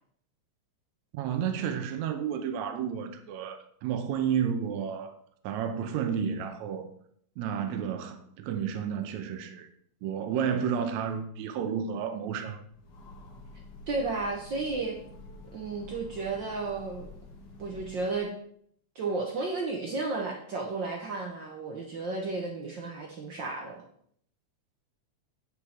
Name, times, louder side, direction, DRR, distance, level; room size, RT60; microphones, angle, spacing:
voice 1, 1.1-5.2 5.4-6.9 7.4-9.7 10.0-12.6, right 8 dB, 75° right, 7 dB, 2.0 m, -31 dB
Train, 12.6-18.3, left 1 dB, 55° left, 1.2 m, -48 dB
voice 2, 13.9-15.0 15.5-17.1 17.6-18.3 18.9-23.8, right 3 dB, 60° right, 1 dB, 1.3 m, -33 dB
8.4 x 6.8 x 4.3 m, 0.65 s
omnidirectional pair, 3.3 m